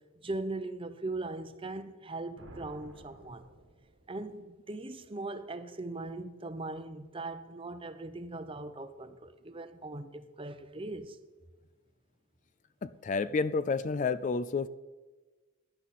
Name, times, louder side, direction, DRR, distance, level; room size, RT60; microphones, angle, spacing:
voice 1, 0.2-3.4 4.1-11.2, right 2 dB, 25° right, 0.7 m, -39 dB
sound 1, 2.3-4.3, right 1 dB, 70° right, 1.5 m, -53 dB
voice 2, 12.8-14.7, left 4 dB, 35° left, 0.3 m, -30 dB
15.5 x 11.0 x 4.2 m
head